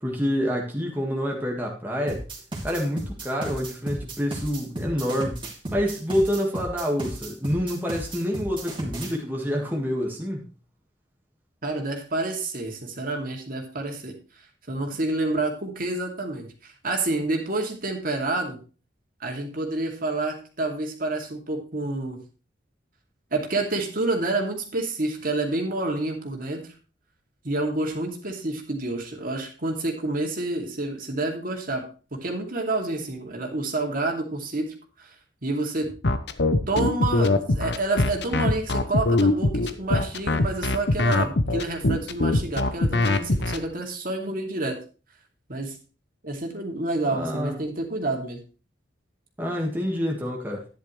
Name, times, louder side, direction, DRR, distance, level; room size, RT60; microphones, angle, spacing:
voice 1, 0.0-2.2 2.6-10.5 47.1-47.5 49.4-50.7, equal, 10° right, -1 dB, 1.7 m, -27 dB
sound 1, 2.1-9.1, right 1 dB, 30° right, 2.8 m, -34 dB
voice 2, 11.6-14.1 14.7-18.6 19.2-22.2 23.3-26.6 27.4-35.1 35.4-35.9 36.7-44.8 45.5-45.7 46.2-48.4, right 2 dB, 50° right, 2 dB, 2.6 m, -28 dB
sound 2, 36.0-43.6, left 2 dB, 65° left, 0.9 m, -22 dB
11.5 x 10.5 x 3.2 m, 0.35 s
head